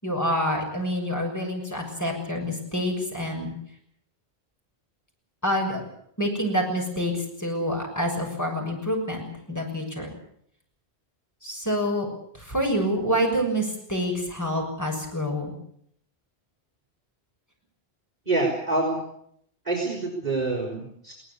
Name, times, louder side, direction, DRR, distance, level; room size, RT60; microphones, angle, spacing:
voice 1, 0.0-3.5 5.4-5.8 6.2-7.1 7.4-10.1 11.4-12.1 12.3-15.5, equal, 15° left, 1 dB, 6.8 m, -27 dB
voice 2, 18.3-19.0 19.6-21.1, right 2 dB, 40° right, -1 dB, 5.2 m, -26 dB
21.5 x 19.0 x 8.5 m, 0.69 s
omnidirectional pair, 1.1 m